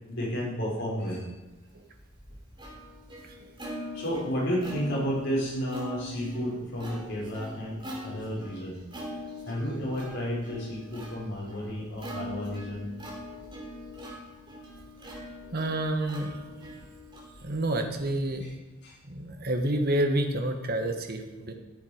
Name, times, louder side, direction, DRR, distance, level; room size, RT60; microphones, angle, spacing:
voice 1, 0.1-1.3 3.9-8.8 9.4-12.9 18.4-18.5 18.8-19.0, equal, 60° left, -5 dB, 4.7 m, -32 dB
Plucked string instrument, 1.7-18.4, equal, 25° right, 3.2 m, -42 dB
voice 2, 15.5-16.4 17.4-18.4 19.1-21.5, right 1 dB, 50° right, 5 dB, 1.3 m, -28 dB
14.0 x 7.4 x 5.0 m, 1.1 s
head